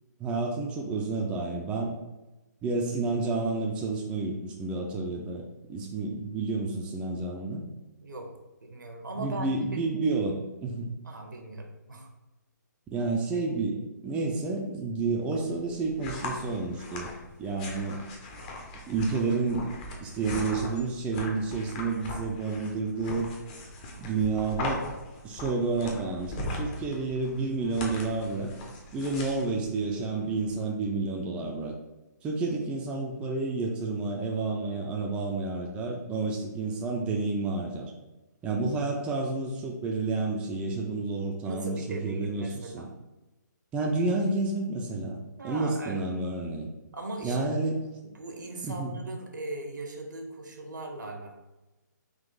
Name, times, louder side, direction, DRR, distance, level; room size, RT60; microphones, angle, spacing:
voice 1, 0.2-1.9 2.6-7.6 9.1-10.9 12.9-17.1 17.4-18.0 18.9-19.7 20.0-23.3 24.0-24.9 25.2-28.5 28.9-31.7 32.2-37.9 38.4-42.9 43.7-46.7 47.2-47.7 48.6-49.0, right 3 dB, 10° right, -1 dB, 0.3 m, -30 dB
voice 2, 8.0-8.3 8.6-9.8 11.0-12.1 13.4-13.5 41.4-42.9 45.4-46.1 46.9-47.7 48.1-51.4, right 2 dB, 80° right, 3 dB, 0.8 m, -39 dB
sound 1, 15.2-30.5, left 2 dB, 25° left, 0.6 m, -39 dB
3.7 x 2.5 x 3.8 m, 1.0 s
figure-of-eight pair, 140°, 10 cm